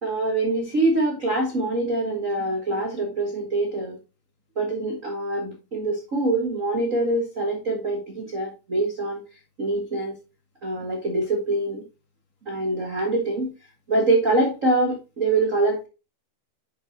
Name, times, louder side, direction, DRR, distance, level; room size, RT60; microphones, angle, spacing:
voice 1, 0.0-4.0 4.5-9.2 9.6-10.1 10.6-11.8 12.4-13.5 13.9-15.9, right 2 dB, 80° right, 0 dB, 0.7 m, -24 dB
10.5 x 5.6 x 2.8 m, 0.29 s
omnidirectional pair, 4.3 m